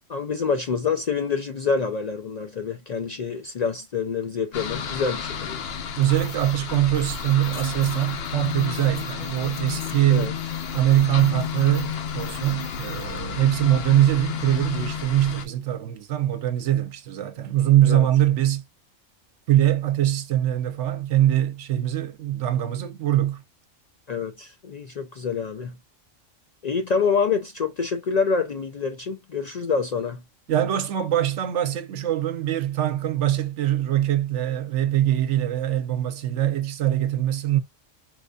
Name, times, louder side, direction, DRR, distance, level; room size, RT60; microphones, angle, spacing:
voice 1, 0.1-5.6 10.1-10.3 17.9-18.1 24.1-25.8 26.6-30.2, left 5 dB, 80° left, 0.3 m, -26 dB
sound 1, 4.5-15.5, left 7 dB, 60° left, 0.8 m, -32 dB
sound 2, 6.0-13.2, left 3 dB, 25° left, 0.8 m, -47 dB
voice 2, 6.0-10.3 10.7-18.6 19.5-23.4 30.5-37.6, right 12 dB, 70° right, 1.0 m, -22 dB
4.4 x 2.6 x 2.2 m
omnidirectional pair, 1.3 m